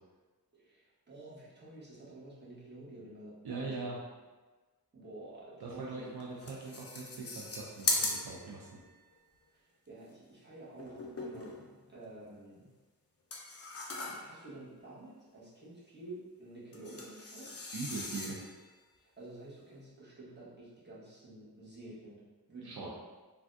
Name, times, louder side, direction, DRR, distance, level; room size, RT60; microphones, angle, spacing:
voice 1, 0.5-3.8 4.9-6.0 9.5-11.6 11.9-12.7 13.5-17.6 19.0-22.2 22.5-22.9, right 2 dB, 25° right, -8 dB, 1.1 m, -50 dB
voice 2, 3.4-4.0 5.6-8.8 17.7-18.4 22.6-22.9, right 4 dB, 75° right, -3 dB, 0.5 m, -41 dB
sound 1, 5.8-5.9 6.2-8.9 10.8-11.8 13.3-14.5 16.7-18.7, left 2 dB, 40° left, 0.5 m, -38 dB
3.3 x 2.2 x 2.5 m, 1.3 s
wide cardioid pair, 70°, 38 cm